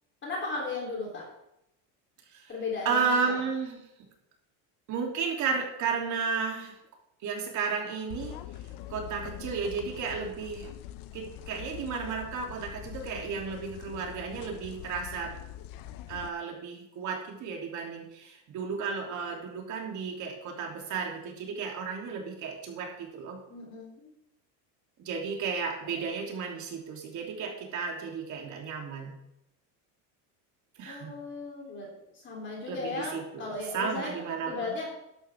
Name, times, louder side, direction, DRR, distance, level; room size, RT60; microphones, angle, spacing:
voice 1, 0.2-1.3 2.5-3.4 23.5-24.1 30.8-34.1 34.4-34.9, left 3 dB, 25° left, -3 dB, 3.4 m, -36 dB
voice 2, 2.8-3.8 4.9-6.7 7.2-8.4 8.9-10.7 11.1-15.3 16.1-23.4 25.0-29.1 30.8-31.1 32.7-34.7, right 5 dB, 40° right, 1 dB, 3.1 m, -33 dB
sound 1, 8.1-16.3, left 12 dB, 50° left, 0.7 m, -44 dB
14.0 x 11.0 x 3.6 m, 0.81 s
cardioid pair, 155°, 44 cm